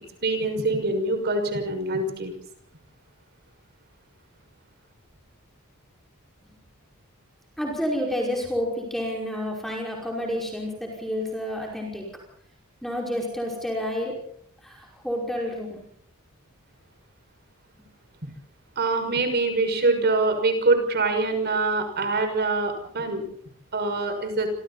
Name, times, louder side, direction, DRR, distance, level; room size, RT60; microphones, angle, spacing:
voice 1, 0.2-2.3 18.8-23.2 23.7-24.5, right 3 dB, 50° right, 6 dB, 6.1 m, -24 dB
voice 2, 7.6-12.0 12.8-14.1 14.6-15.8, equal, ahead, -2 dB, 5.4 m, -29 dB
28.0 x 26.5 x 4.2 m, 0.64 s
head